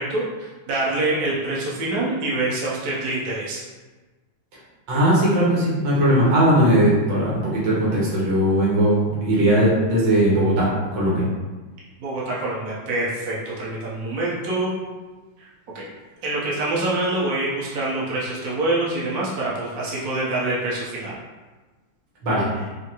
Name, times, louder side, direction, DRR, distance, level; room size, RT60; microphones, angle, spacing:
voice 1, 0.0-3.6 12.0-14.7 15.4-15.5 15.7-15.8 16.2-21.2, right 2 dB, 55° right, -7 dB, 1.3 m, -25 dB
voice 2, 4.9-11.2 22.2-22.5, right 1 dB, 80° right, -7 dB, 2.0 m, -19 dB
5.7 x 2.1 x 3.0 m, 1.2 s
omnidirectional pair, 2.1 m